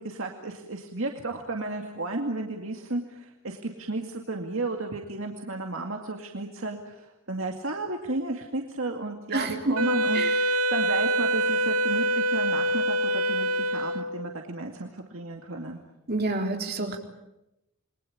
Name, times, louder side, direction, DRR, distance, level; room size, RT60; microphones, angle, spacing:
voice 1, 0.0-15.8, right 2 dB, 65° right, 2 dB, 2.3 m, -33 dB
voice 2, 9.3-9.7 10.1-10.3 16.1-17.0, right 2 dB, 45° right, 2 dB, 3.9 m, -28 dB
Wind instrument woodwind instrument, 9.8-14.3, right 1 dB, 85° right, 1.1 m, -25 dB
29.0 x 22.0 x 8.7 m, 0.90 s
head